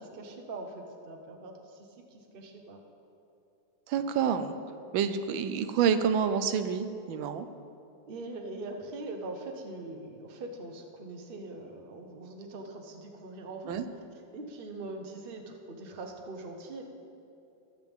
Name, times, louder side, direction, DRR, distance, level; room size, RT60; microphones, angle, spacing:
voice 1, 0.0-2.8 8.1-13.7 14.3-16.8, right 2 dB, 40° right, 3 dB, 0.9 m, -42 dB
voice 2, 3.9-4.6 4.9-7.5 13.7-13.9, right 7 dB, 85° right, 10 dB, 1.4 m, -28 dB
22.5 x 7.6 x 3.6 m, 2.7 s
omnidirectional pair, 2.1 m